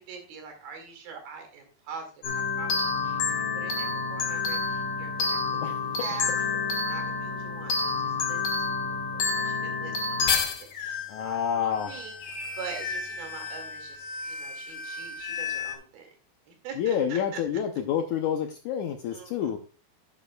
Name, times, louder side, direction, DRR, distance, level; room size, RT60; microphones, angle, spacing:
voice 1, 0.0-2.1 2.3-3.2 3.5-6.3 6.9-8.4 8.8-16.1 16.5-17.4 19.1-19.5, right 6 dB, 80° right, 3 dB, 4.1 m, -44 dB
sound 1, 2.2-15.7, left 4 dB, 65° left, 3.2 m, -30 dB
voice 2, 11.1-11.9 16.8-19.6, left 8 dB, 80° left, 5 dB, 1.7 m, -28 dB
11.5 x 9.3 x 2.3 m, 0.38 s
omnidirectional pair, 4.3 m